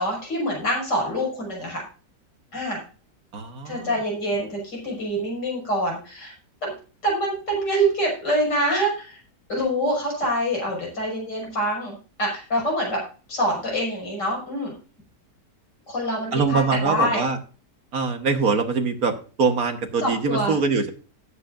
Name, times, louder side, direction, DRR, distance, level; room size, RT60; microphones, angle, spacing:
voice 1, 0.0-1.8 2.5-2.8 3.6-6.3 6.6-6.7 7.0-9.2 9.5-13.0 13.3-14.7 15.9-17.2 20.0-20.5, equal, 80° left, -2 dB, 6.4 m, -25 dB
voice 2, 3.3-3.9 16.3-17.4 17.9-20.9, right 4 dB, 60° right, 6 dB, 1.7 m, -23 dB
17.5 x 8.1 x 2.6 m, 0.36 s
omnidirectional pair, 1.8 m